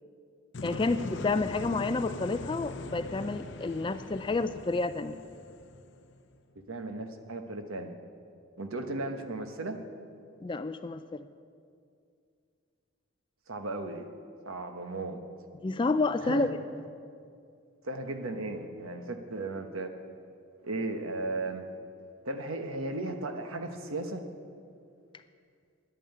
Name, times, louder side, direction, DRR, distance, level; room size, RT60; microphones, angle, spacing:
sound 1, 0.5-6.4, left 2 dB, 55° left, 0.7 m, -41 dB
voice 1, 0.6-5.1 10.4-11.3 15.6-16.6, left 3 dB, 20° left, 11 dB, 0.3 m, -30 dB
voice 2, 6.7-8.0 8.6-9.8 13.5-14.1 14.4-15.2 16.2-16.5 17.8-19.9 20.6-21.7 22.2-24.2, right 2 dB, 75° right, 6 dB, 1.1 m, -35 dB
11.0 x 9.1 x 9.3 m, 2.3 s
head